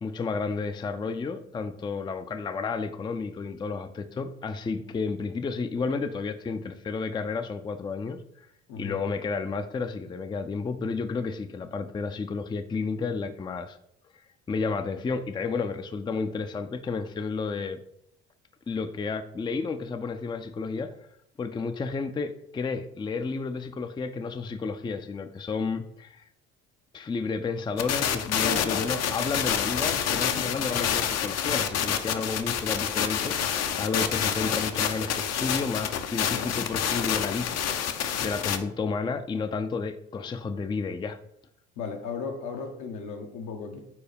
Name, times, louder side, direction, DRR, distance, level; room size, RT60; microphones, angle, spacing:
voice 1, 0.0-8.2 8.8-13.8 14.5-17.8 18.7-20.9 21.4-26.3 26.9-33.4 33.8-41.2, left 4 dB, 15° left, 9 dB, 0.4 m, -31 dB
sound 1, 27.8-38.6, left 8 dB, 55° left, 0.7 m, -28 dB
voice 2, 28.4-29.0 29.9-30.5 36.3-36.5 41.8-43.8, left 5 dB, 75° left, 4 dB, 1.2 m, -36 dB
4.7 x 4.2 x 5.1 m, 0.75 s
cardioid pair, 95°, 30 cm